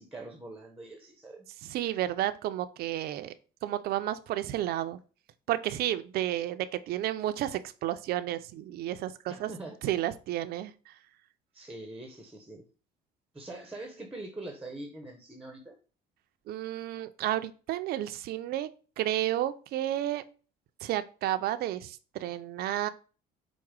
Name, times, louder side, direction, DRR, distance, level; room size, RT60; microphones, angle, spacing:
voice 1, 0.0-1.5 9.3-9.8 11.5-12.7 13.3-15.8, right 2 dB, 5° right, 0.7 m, -43 dB
voice 2, 1.6-3.3 3.6-5.0 5.5-9.5 9.8-10.7 16.5-18.7 19.0-20.2 20.8-22.9, right 13 dB, 65° right, 0.4 m, -31 dB
4.7 x 2.1 x 4.7 m
cardioid pair, 110°, 17 cm